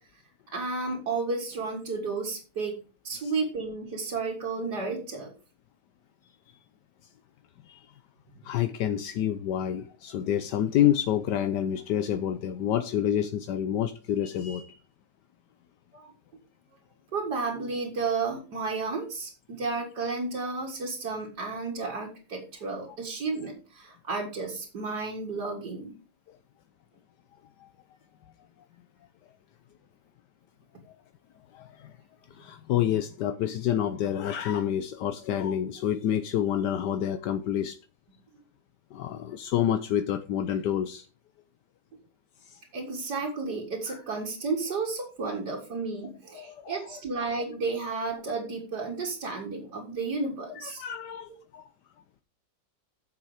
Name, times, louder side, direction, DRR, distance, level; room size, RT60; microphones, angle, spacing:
voice 1, 0.5-2.8 3.0-5.3 8.4-8.5 15.9-16.1 17.1-25.9 42.7-50.8, right 4 dB, 70° right, 2.5 m, -32 dB
voice 2, 8.4-14.8 26.3-26.4 27.6-27.7 31.5-32.0 32.3-37.8 38.9-41.1 42.4-42.6 43.9-44.0 46.3-46.8 50.5-51.7, left 10 dB, 80° left, 1.3 m, -28 dB
9.9 x 7.0 x 5.0 m
omnidirectional pair, 1.9 m